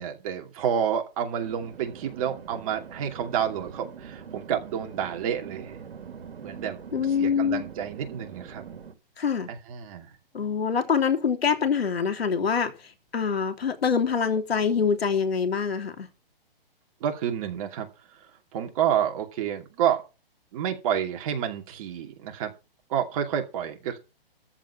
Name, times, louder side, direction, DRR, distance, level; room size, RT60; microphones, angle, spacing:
voice 1, 0.0-5.8 6.4-6.8 7.2-8.6 9.5-10.1 17.0-17.9 18.5-20.0 20.5-22.5 22.9-24.0, right 9 dB, 35° right, 2.6 m, -29 dB
sound 1, 1.4-8.9, right 7 dB, 75° right, 2.6 m, -43 dB
voice 2, 6.9-7.6 9.2-9.5 10.3-12.7 13.1-16.1, left 6 dB, 90° left, 3.3 m, -25 dB
14.0 x 5.0 x 8.6 m
hypercardioid pair, 155°, 29 cm